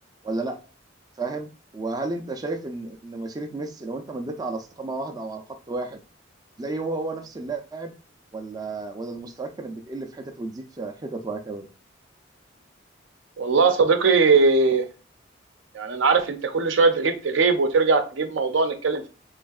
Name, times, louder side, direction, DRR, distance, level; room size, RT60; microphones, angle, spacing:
voice 1, 0.2-0.6 1.2-6.0 6.6-7.9 8.3-11.7, right 3 dB, 20° right, 4 dB, 0.4 m, -32 dB
voice 2, 13.4-14.8 15.7-19.1, right 4 dB, 75° right, 7 dB, 0.6 m, -20 dB
3.5 x 3.1 x 2.3 m, 0.34 s
head